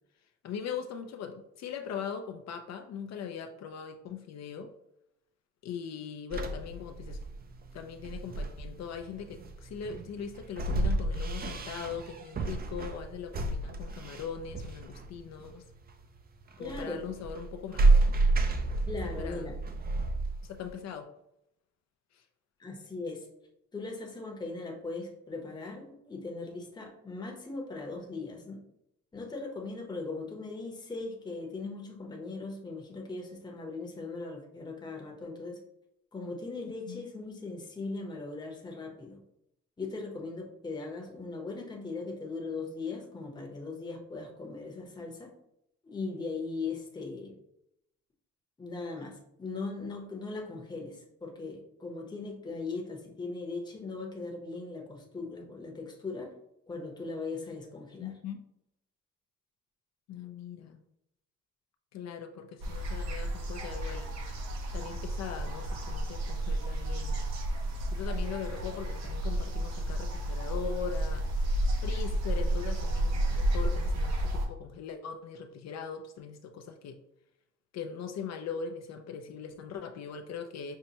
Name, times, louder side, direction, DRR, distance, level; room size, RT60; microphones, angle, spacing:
voice 1, 0.4-4.7 5.6-7.2 7.7-15.7 16.6-18.2 19.2-19.6 20.4-21.1 22.1-22.2 36.9-37.0 58.0-58.4 60.1-60.8 61.9-64.1 64.7-67.2 67.9-71.2 71.8-77.0 77.7-80.8, left 7 dB, 60° left, 5 dB, 0.4 m, -40 dB
sound 1, 6.3-20.7, right 2 dB, 30° right, 0.4 m, -30 dB
voice 2, 16.6-17.0 18.9-19.6 22.6-23.3 23.7-28.6 29.1-35.6 36.1-39.2 39.8-45.3 45.8-47.3 48.6-56.3 56.7-58.1, left 3 dB, 15° left, 0 dB, 0.8 m, -39 dB
sound 2, 62.6-74.5, right 1 dB, 60° right, 0.8 m, -31 dB
5.4 x 2.1 x 2.8 m, 0.80 s
cardioid pair, 90°, 30 cm